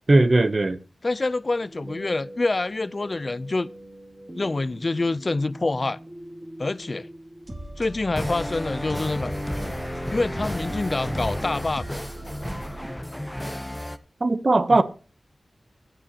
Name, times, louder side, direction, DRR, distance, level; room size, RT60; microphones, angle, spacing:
voice 1, 0.1-0.8 14.2-14.8, right 2 dB, 45° right, 0.8 m, -18 dB
voice 2, 1.0-3.7 4.4-6.0 6.6-7.1 7.8-9.3 10.1-12.0 14.7-14.8, left 2 dB, 40° left, 0.5 m, -26 dB
sound 1, 1.6-12.9, right 1 dB, 25° right, 2.5 m, -40 dB
sound 2, 8.1-14.0, left 1 dB, 10° left, 0.8 m, -32 dB
14.5 x 9.9 x 2.9 m
wide cardioid pair, 75°, 0 cm